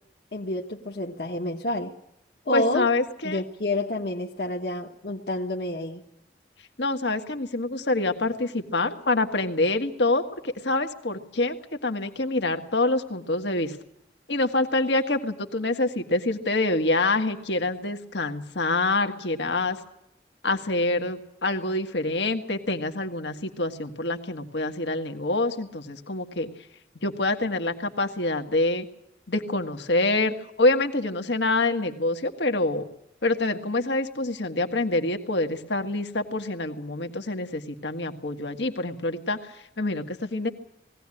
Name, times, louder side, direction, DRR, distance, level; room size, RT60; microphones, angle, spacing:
voice 1, 0.3-1.9 2.5-2.9 3.2-6.0, left 1 dB, 60° left, -1 dB, 1.3 m, -29 dB
voice 2, 2.5-3.4 6.8-11.6 11.8-13.8 14.3-19.8 20.4-26.5 27.0-28.9 29.3-32.8 33.2-40.5, left 2 dB, 80° left, 5 dB, 1.7 m, -26 dB
20.0 x 17.0 x 9.9 m, 0.80 s
head